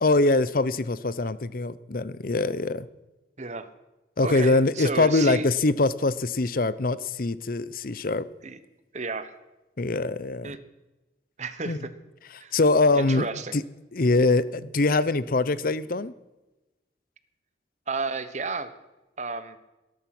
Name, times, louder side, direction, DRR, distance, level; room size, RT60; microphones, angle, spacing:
voice 1, 0.0-2.9 4.2-8.2 9.8-10.6 11.7-11.8 12.5-13.3 13.5-13.6 13.9-16.1, left 3 dB, 50° left, 16 dB, 0.7 m, -23 dB
voice 2, 4.2-5.5 8.4-8.6 8.9-9.3 10.4-10.6 11.4-11.9 12.4-12.5 12.9-13.5 15.0-15.1 17.9-18.7 19.2-19.6, right 3 dB, 40° right, 12 dB, 1.1 m, -32 dB
20.0 x 11.5 x 6.1 m, 1.1 s
head